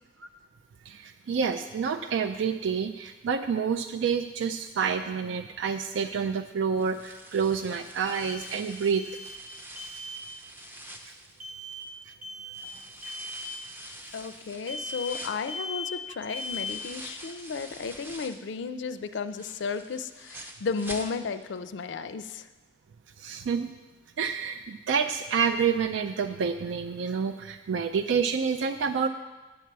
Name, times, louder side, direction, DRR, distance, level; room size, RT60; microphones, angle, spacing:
voice 1, 0.9-9.0 23.2-23.7 24.2-29.1, right 6 dB, 85° right, 7 dB, 0.4 m, -28 dB
sound 1, 6.8-12.0 12.5-18.5 18.9-21.6 21.8-21.9 22.4-22.5, right 1 dB, 10° right, 0.5 m, -46 dB
sound 2, 8.1-8.7 8.9-9.5 9.8-10.3 11.4-11.9 12.2-12.7 13.0-13.5 14.7-15.2 15.5-16.0 16.3-16.9, left 2 dB, 45° right, 0.7 m, -38 dB
voice 2, 14.1-22.5, left 5 dB, 75° left, 11 dB, 0.4 m, -34 dB
9.4 x 7.3 x 4.6 m, 1.2 s
head